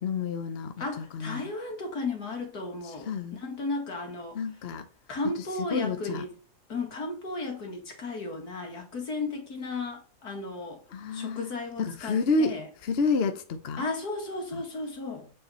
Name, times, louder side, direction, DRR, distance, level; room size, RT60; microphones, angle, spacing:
voice 1, 0.0-1.5 2.8-3.4 4.3-4.9 5.6-6.2 10.9-11.5 11.8-13.8 14.5-14.6, left 4 dB, 45° left, 0.9 m, -30 dB
voice 2, 0.8-4.4 5.1-6.3 6.7-10.8 11.1-12.7 13.8-15.3, left 3 dB, 70° left, 2.6 m, -34 dB
8.7 x 5.0 x 4.3 m
omnidirectional pair, 1.7 m